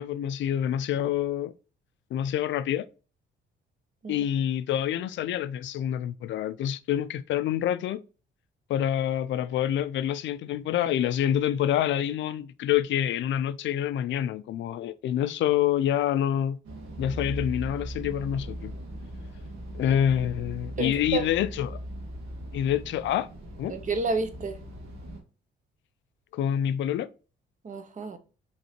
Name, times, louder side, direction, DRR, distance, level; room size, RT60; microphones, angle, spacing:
voice 1, 0.0-1.5 2.1-2.9 4.1-8.0 8.7-16.6 17.0-18.7 19.7-21.8 22.5-23.3 23.6-23.7 26.3-27.1, left 10 dB, 70° left, 0.4 m, -27 dB
sound 1, 16.6-25.2, right 1 dB, 80° right, 1.6 m, -39 dB
voice 2, 20.8-21.3 23.7-24.6 27.6-28.2, right 3 dB, 40° right, 0.8 m, -30 dB
5.3 x 3.3 x 2.9 m
cardioid pair, 90°, 20 cm